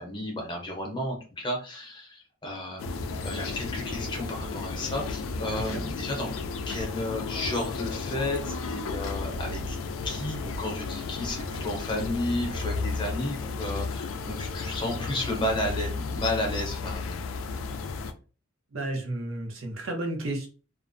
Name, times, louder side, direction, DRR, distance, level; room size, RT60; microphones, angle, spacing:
voice 1, 0.0-2.8 3.2-6.3 6.7-9.8 10.0-17.2, left 1 dB, 25° left, 1 dB, 0.6 m, -32 dB
sound 1, 2.8-18.1, left 4 dB, 75° left, 0.3 m, -33 dB
voice 2, 5.5-5.8 18.7-20.5, right 1 dB, 80° right, 2 dB, 0.7 m, -32 dB
2.4 x 2.0 x 2.5 m, 0.35 s
head